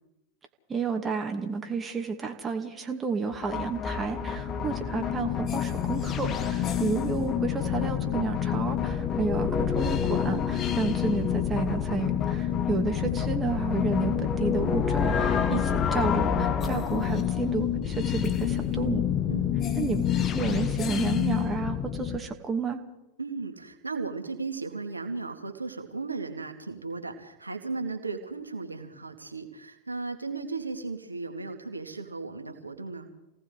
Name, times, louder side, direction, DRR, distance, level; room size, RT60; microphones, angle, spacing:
voice 1, 0.7-19.0 19.8-22.8, right 5 dB, 20° right, 4 dB, 2.5 m, -31 dB
sound 1, 3.3-22.2, left 8 dB, 30° left, 1.6 m, -27 dB
voice 2, 6.6-6.9 10.9-11.1 12.5-12.9 19.3-19.5 23.2-33.1, right 4 dB, 80° right, 5 dB, 2.5 m, -36 dB
28.5 x 18.5 x 5.0 m, 0.92 s
figure-of-eight pair, 90°, 0 cm